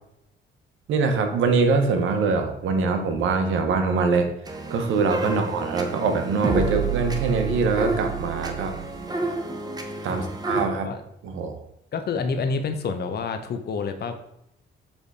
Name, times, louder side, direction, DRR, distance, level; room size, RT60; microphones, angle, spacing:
voice 1, 0.9-4.3 4.7-8.7 10.0-10.9 11.2-11.6, right 4 dB, 80° right, 6 dB, 1.0 m, -23 dB
sound 1, 4.5-10.7, right 4 dB, 20° right, 0.9 m, -29 dB
voice 2, 5.2-5.6 10.1-10.3 10.8-11.0 11.9-14.1, left 4 dB, 55° left, 7 dB, 0.8 m, -28 dB
7.2 x 3.4 x 4.1 m, 0.80 s
cardioid pair, 90°, 20 cm